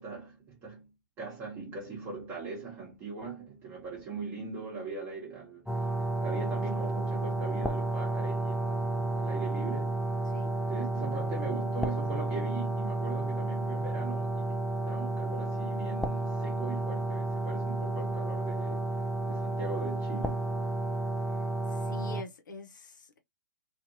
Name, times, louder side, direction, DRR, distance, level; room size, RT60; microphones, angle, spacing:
voice 1, 0.0-5.9 6.2-10.0 10.5-14.5 14.8-18.9 19.3-20.5, right 4 dB, 20° right, 1.1 m, -40 dB
sound 1, 5.7-22.2, right 2 dB, ahead, 0.3 m, -31 dB
voice 2, 21.7-23.2, left 3 dB, 70° left, 0.9 m, -45 dB
2.6 x 2.5 x 2.6 m
figure-of-eight pair, 120°, 11 cm